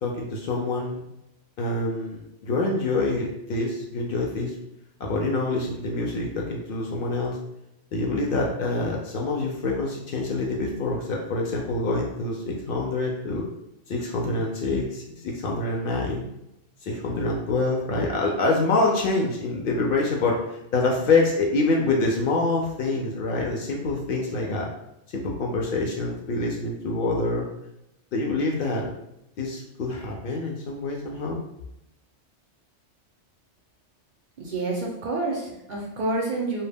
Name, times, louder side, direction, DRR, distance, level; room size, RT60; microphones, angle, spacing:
voice 1, 0.0-1.0 1.6-4.5 5.0-7.4 7.9-13.4 13.9-16.2 16.8-20.4 20.7-24.7 25.1-27.5 28.1-28.9 29.4-31.4, left 3 dB, 60° left, -1 dB, 0.6 m, -26 dB
voice 2, 34.4-36.6, right 2 dB, 55° right, -2 dB, 0.6 m, -28 dB
2.2 x 2.1 x 3.3 m, 0.85 s
omnidirectional pair, 1.2 m